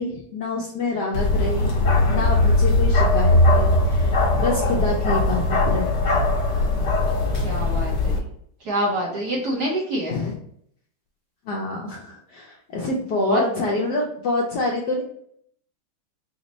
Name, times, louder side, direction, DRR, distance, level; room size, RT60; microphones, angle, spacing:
voice 1, 0.0-1.7 2.1-5.9 10.1-10.3 11.5-15.0, left 2 dB, 75° left, -1 dB, 1.0 m, -26 dB
Bark, 1.1-8.2, left 2 dB, 60° left, 1.5 m, -20 dB
voice 2, 7.4-8.2 8.7-10.2 13.1-13.4, right 1 dB, 65° right, -1 dB, 1.0 m, -26 dB
4.3 x 2.0 x 3.9 m, 0.67 s
omnidirectional pair, 2.3 m